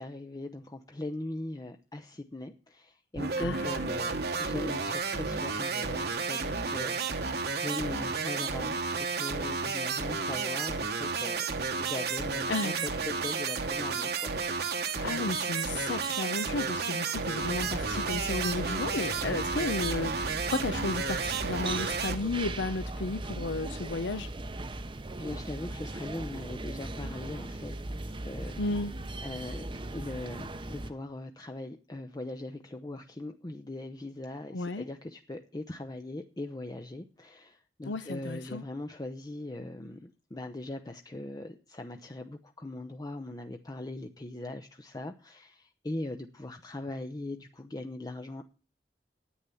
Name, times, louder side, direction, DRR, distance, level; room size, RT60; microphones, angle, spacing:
voice 1, 0.0-11.4 11.8-14.3 14.6-14.8 25.2-27.7 28.1-28.6 29.2-48.4, left 2 dB, 20° left, 0.6 m, -40 dB
sound 1, 3.1-22.2, right 4 dB, 60° right, 1.3 m, -32 dB
voice 2, 3.4-3.8 12.5-12.9 15.0-24.3 28.6-28.9 34.5-34.9 37.9-38.6, left 3 dB, 85° left, 0.8 m, -33 dB
sound 2, 17.4-30.9, right 2 dB, 30° right, 0.8 m, -39 dB
9.9 x 9.1 x 7.0 m
head